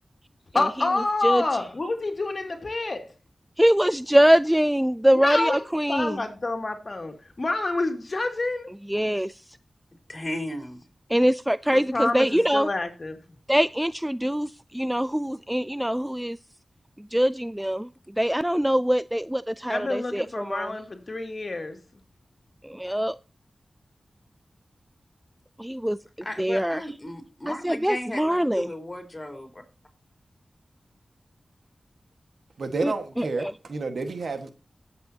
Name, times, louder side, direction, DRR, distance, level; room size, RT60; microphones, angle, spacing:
voice 1, 0.5-3.0 5.1-5.6 5.9-8.7 11.7-13.2 19.7-21.8, left 2 dB, 55° left, 2.3 m, -28 dB
voice 2, 3.6-6.2 8.9-9.4 11.1-12.7 13.5-16.4 17.0-17.9 18.2-20.7 22.6-23.2 25.6-26.0 26.4-26.8 27.5-28.7 32.8-33.5, equal, 10° right, 0.4 m, -23 dB
voice 3, 10.1-10.9 26.2-29.6, left 1 dB, 35° left, 3.7 m, -35 dB
voice 4, 32.6-34.5, right 3 dB, 85° right, 1.5 m, -30 dB
17.0 x 7.8 x 2.8 m
cardioid pair, 45°, 0 cm